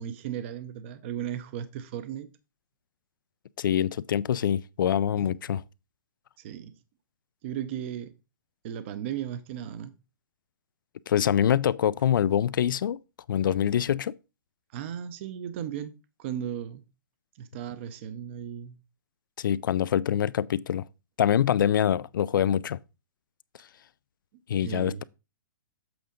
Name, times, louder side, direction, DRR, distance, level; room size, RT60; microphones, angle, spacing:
voice 1, 0.0-2.3 5.2-5.3 6.4-6.8 7.4-8.1 8.6-9.9 14.7-16.8 17.3-18.8 24.6-25.0, right 9 dB, 35° right, 0.6 m, -36 dB
voice 2, 3.6-5.6 11.1-13.0 13.3-14.1 19.4-20.8 21.2-22.8 24.5-25.0, left 9 dB, 80° left, 0.4 m, -25 dB
7.9 x 3.8 x 5.0 m
hypercardioid pair, 160°, 11 cm